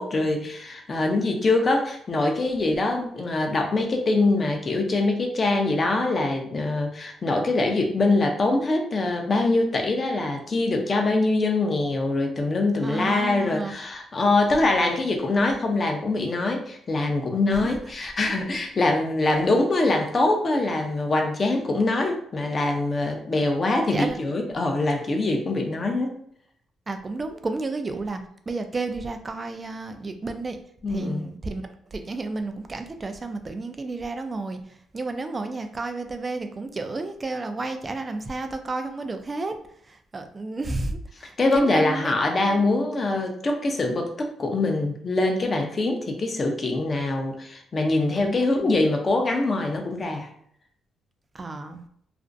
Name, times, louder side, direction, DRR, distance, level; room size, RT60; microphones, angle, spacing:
voice 1, 0.0-26.2 30.8-31.3 41.4-50.3, left 2 dB, 35° left, 2 dB, 0.5 m, -23 dB
voice 2, 12.8-13.7 17.5-18.4 23.9-24.2 26.9-28.2 28.5-30.6 30.9-39.6 39.8-42.1 42.5-42.7 48.2-48.7 51.3-51.8, right 3 dB, 30° right, 7 dB, 0.3 m, -32 dB
2.4 x 2.0 x 2.5 m, 0.66 s
cardioid pair, 90°, 0 cm